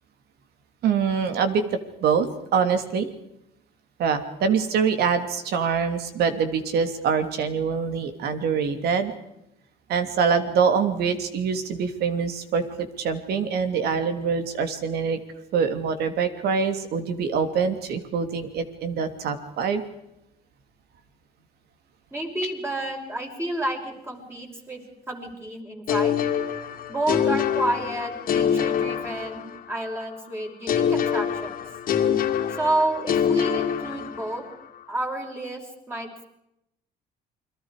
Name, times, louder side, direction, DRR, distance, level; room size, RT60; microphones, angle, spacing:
voice 1, 0.8-1.6 2.0-3.1 4.0-9.1 9.9-15.2 15.5-19.8, right 6 dB, 70° right, 8 dB, 2.9 m, -24 dB
voice 2, 22.1-26.2 26.9-31.6 32.5-34.4 34.9-36.2, right 1 dB, 15° right, 1 dB, 6.1 m, -30 dB
sound 1, 25.9-29.8 30.7-34.5, left 8 dB, 55° left, 2.4 m, -25 dB
29.0 x 22.5 x 5.0 m, 0.82 s
cardioid pair, 110°, 17 cm